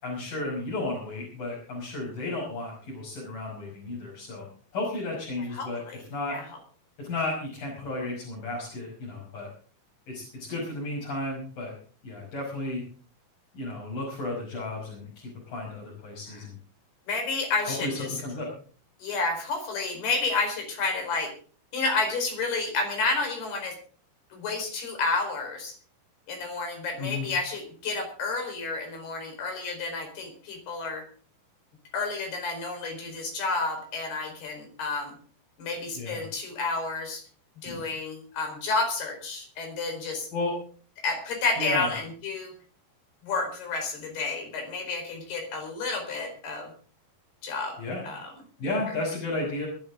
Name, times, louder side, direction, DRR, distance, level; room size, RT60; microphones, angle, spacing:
voice 1, 0.0-4.5 4.7-5.8 6.1-6.4 7.0-9.5 10.1-11.7 12.0-12.8 13.5-16.6 17.7-18.5 27.0-27.3 36.0-36.2 37.6-37.9 40.3-40.6 41.6-41.9 47.8-48.0 48.6-49.7, left 2 dB, 60° left, -5 dB, 7.5 m, -33 dB
voice 2, 5.5-6.0 6.3-6.4 16.3-16.4 17.1-18.2 19.0-21.3 21.7-23.8 24.3-25.7 26.3-31.1 31.9-35.1 35.6-37.2 37.6-40.3 41.0-42.5 43.2-46.7 47.4-47.8 48.0-48.3, left 3 dB, 85° left, 4 dB, 6.6 m, -30 dB
22.5 x 12.0 x 3.8 m, 0.42 s
omnidirectional pair, 4.4 m